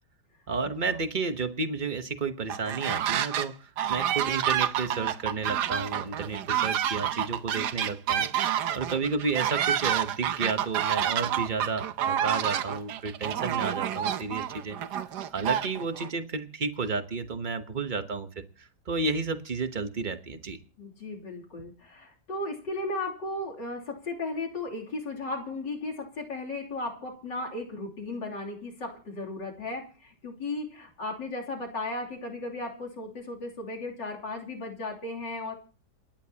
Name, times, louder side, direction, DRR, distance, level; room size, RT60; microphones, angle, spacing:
voice 1, 0.5-8.3 8.7-14.8 15.3-20.6, right 4 dB, 35° right, 8 dB, 1.0 m, -32 dB
sound 1, 2.5-3.5 3.8-16.1, right 10 dB, 70° right, 1.4 m, -29 dB
voice 2, 20.8-35.6, left 2 dB, 85° left, 0 dB, 3.8 m, -35 dB
28.0 x 10.5 x 2.9 m, 0.38 s
omnidirectional pair, 1.9 m